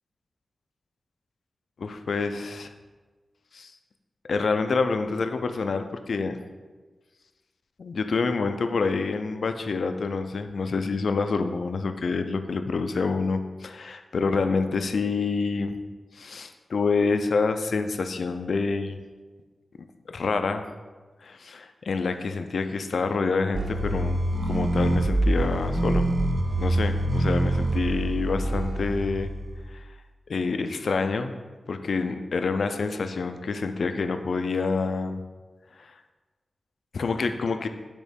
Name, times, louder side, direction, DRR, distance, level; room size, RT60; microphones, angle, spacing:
voice 1, 1.8-2.7 3.5-3.7 4.3-6.4 7.8-15.8 16.2-19.0 20.1-20.6 21.2-26.1 26.6-29.3 29.7-29.8 30.3-31.3 31.7-35.2 35.8-35.9 36.9-37.7, left 4 dB, 70° left, 8 dB, 0.4 m, -27 dB
sound 1, 23.5-29.8, right 1 dB, 50° right, 0.4 m, -25 dB
6.3 x 3.0 x 5.1 m, 1.3 s
wide cardioid pair, 90°, 0 cm